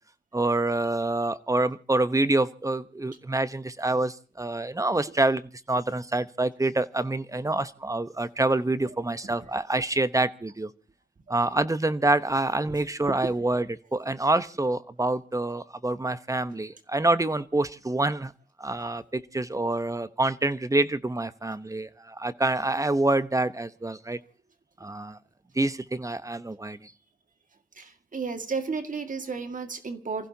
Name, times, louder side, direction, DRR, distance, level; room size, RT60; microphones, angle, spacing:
voice 1, 0.3-5.4 5.7-10.7 11.3-18.3 18.6-24.2 24.8-25.2 25.6-26.9, right 2 dB, 20° right, 14 dB, 0.9 m, -26 dB
voice 2, 27.8-30.3, right 4 dB, 55° right, 7 dB, 1.9 m, -33 dB
29.0 x 15.5 x 2.8 m, 0.37 s
wide cardioid pair, 95°, 16 cm